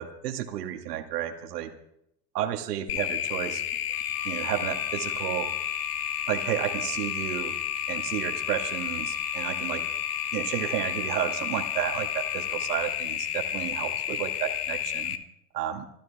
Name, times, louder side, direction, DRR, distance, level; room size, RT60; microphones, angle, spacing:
voice 1, 0.0-1.7 2.3-3.6 4.2-5.5 6.3-7.5 7.9-9.8 10.3-15.2 15.5-15.9, right 11 dB, 70° right, 5 dB, 2.1 m, -32 dB
sound 1, 2.9-15.2, left 10 dB, 65° left, 1.6 m, -31 dB
Wind instrument woodwind instrument, 3.9-12.7, left 4 dB, 20° left, 7.4 m, -43 dB
26.5 x 13.0 x 3.6 m, 0.76 s
hypercardioid pair, 95°, 50 cm